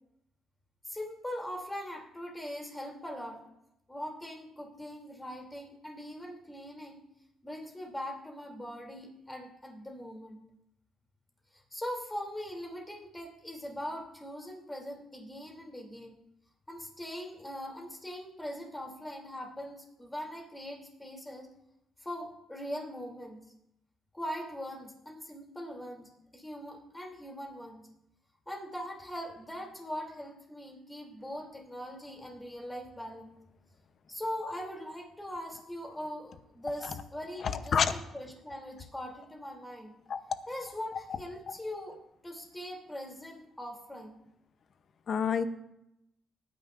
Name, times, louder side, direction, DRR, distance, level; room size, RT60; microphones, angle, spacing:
voice 1, 0.8-3.4 3.9-7.0 7.4-10.4 11.5-16.2 16.7-21.5 22.0-23.4 24.1-27.9 28.5-33.3 34.1-40.0 40.5-42.0 42.2-44.1, equal, 10° left, 1 dB, 3.0 m, -41 dB
voice 2, 37.4-37.9 40.1-40.2 45.1-45.5, left 7 dB, 55° left, 11 dB, 0.8 m, -27 dB
19.0 x 9.7 x 2.6 m, 0.83 s
cardioid pair, 90°, 0 cm